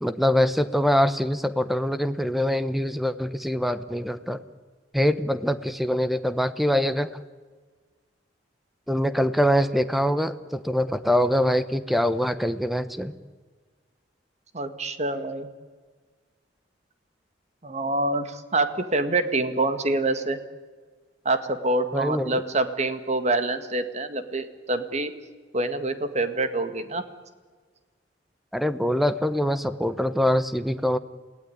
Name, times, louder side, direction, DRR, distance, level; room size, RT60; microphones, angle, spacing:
voice 1, 0.0-4.4 4.9-7.1 8.9-13.1 21.9-22.4 28.5-31.0, equal, ahead, 12 dB, 1.0 m, -24 dB
voice 2, 14.5-15.5 17.6-20.4 21.3-25.1 25.5-27.0, right 2 dB, 40° right, 10 dB, 1.9 m, -26 dB
28.0 x 17.5 x 9.9 m, 1.5 s
head